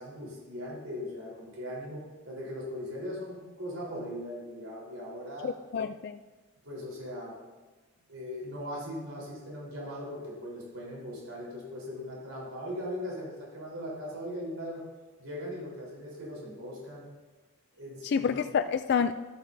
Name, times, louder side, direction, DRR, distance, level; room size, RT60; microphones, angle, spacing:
voice 1, 0.0-5.5 6.6-7.4 8.1-14.8 15.2-17.0 17.7-18.3, equal, 80° right, -4 dB, 3.9 m, -39 dB
voice 2, 5.4-6.2 18.0-19.1, left 6 dB, 50° left, 9 dB, 0.3 m, -28 dB
12.5 x 12.5 x 2.7 m, 1.2 s
head